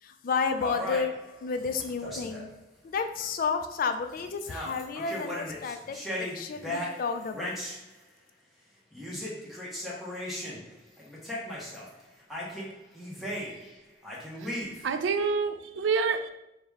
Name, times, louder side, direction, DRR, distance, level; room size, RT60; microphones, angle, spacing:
voice 1, 0.0-1.1 1.4-2.5 2.8-7.6, left 5 dB, 50° left, 7 dB, 0.3 m, -31 dB
sound 1, 0.6-2.5 3.2-3.3 3.7-3.9 4.1-7.8 8.9-10.6 11.0-11.9 12.3-13.7 14.0-15.0, left 1 dB, ahead, 0.8 m, -37 dB
voice 2, 14.8-16.3, right 5 dB, 80° right, 8 dB, 0.4 m, -27 dB
4.7 x 2.1 x 3.5 m, 0.87 s
head